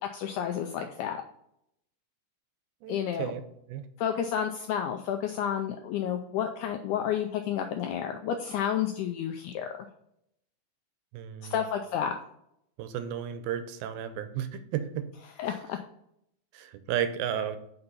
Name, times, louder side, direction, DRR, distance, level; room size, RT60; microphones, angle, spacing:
voice 1, 0.1-1.2 2.9-3.3 4.0-9.9 11.5-12.2 15.4-15.8, left 9 dB, 90° left, 5 dB, 1.8 m, -31 dB
voice 2, 2.8-3.4 3.7-3.8 11.1-11.5 12.8-15.1 16.5-17.6, right 9 dB, 90° right, 10 dB, 2.5 m, -33 dB
5.7 x 5.3 x 4.0 m, 0.75 s
omnidirectional pair, 4.1 m